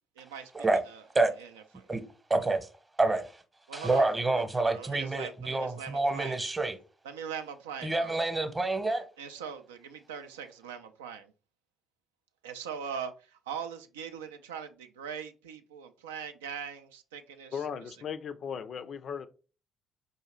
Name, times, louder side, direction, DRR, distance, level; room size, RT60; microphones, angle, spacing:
voice 1, 0.2-0.5 0.9-1.0 1.4-1.5 1.7-1.9 3.7-4.4 4.7-6.4 7.0-8.2 9.2-11.3 12.4-17.6, right 7 dB, 80° right, 0.3 m, -41 dB
voice 2, 2.3-2.7 3.0-3.4 3.7-6.8 7.8-9.1, right 2 dB, 20° right, 0.8 m, -28 dB
voice 3, 17.5-19.3, left 7 dB, 50° left, 0.3 m, -37 dB
4.7 x 2.7 x 3.0 m
figure-of-eight pair, 45°, 0 cm